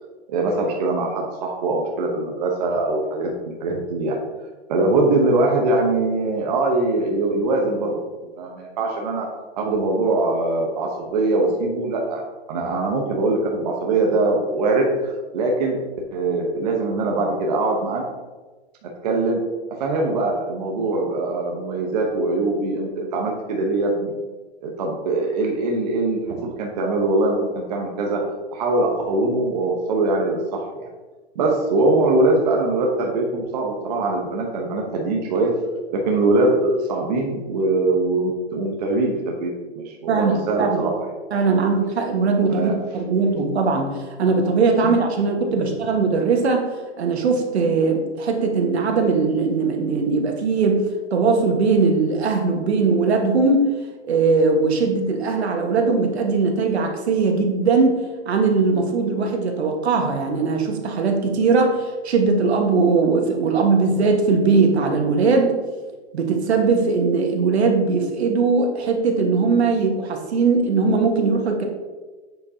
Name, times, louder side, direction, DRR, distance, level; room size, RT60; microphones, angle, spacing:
voice 1, 0.3-4.1 4.7-8.0 8.4-9.3 9.6-12.2 12.5-15.8 16.1-18.0 18.8-19.4 19.8-24.1 24.6-28.2 28.5-30.9 31.3-35.5 35.9-41.1 42.5-42.7 44.8-44.9 45.5-45.7, right 2 dB, 35° right, 0 dB, 1.0 m, -22 dB
voice 2, 40.1-40.8 41.3-46.7 47.0-50.8 51.1-53.7 54.1-58.0 58.2-65.5 66.1-71.6, right 4 dB, 70° right, 3 dB, 1.5 m, -20 dB
8.0 x 7.0 x 2.8 m, 1.3 s
hypercardioid pair, 165°, 34 cm